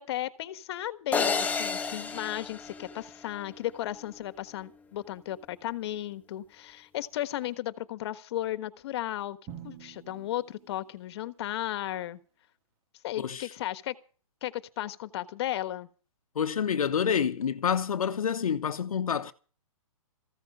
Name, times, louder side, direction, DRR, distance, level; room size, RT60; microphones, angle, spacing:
voice 1, 0.0-9.4 9.6-12.2 13.0-13.9 14.4-15.9, left 13 dB, 45° left, 1.4 m, -35 dB
sound 1, 1.1-3.5, left 5 dB, 10° left, 1.3 m, -31 dB
Drum, 9.5-11.5, right 10 dB, 30° right, 2.7 m, -48 dB
voice 2, 16.4-19.3, left 7 dB, 75° left, 1.0 m, -28 dB
15.5 x 13.5 x 5.4 m
hypercardioid pair, 140°, 18 cm